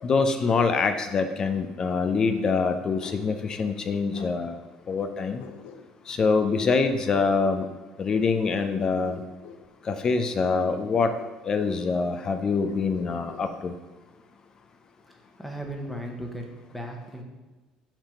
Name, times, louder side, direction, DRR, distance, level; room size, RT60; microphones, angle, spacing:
voice 1, 0.0-4.6 4.9-5.4 6.1-7.7 8.0-9.2 9.9-11.1 11.4-13.7, left 4 dB, 35° left, 8 dB, 0.4 m, -25 dB
Bark, 3.0-3.3 4.1-4.4 5.4-6.1 6.8-7.3 8.5-9.6 10.9-11.8 12.6-13.5, left 7 dB, 90° left, 0.5 m, -46 dB
voice 2, 15.1-17.2, equal, 5° left, 1 dB, 0.9 m, -37 dB
5.8 x 3.4 x 5.5 m, 1.2 s
cardioid pair, 130°, 2 cm